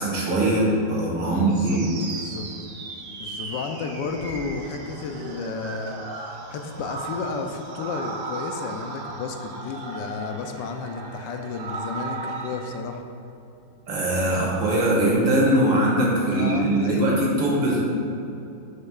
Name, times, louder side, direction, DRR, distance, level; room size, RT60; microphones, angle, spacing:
voice 1, 0.0-1.9 13.9-17.8, right 1 dB, 90° right, -4 dB, 2.6 m, -21 dB
voice 2, 1.2-1.8 2.1-2.5 3.2-6.0 6.5-13.0 16.2-17.1, left 4 dB, 75° left, 5 dB, 1.3 m, -32 dB
sound 1, 1.5-12.8, right 3 dB, 65° right, 0.5 m, -36 dB
11.5 x 6.6 x 2.4 m, 2.8 s
omnidirectional pair, 2.0 m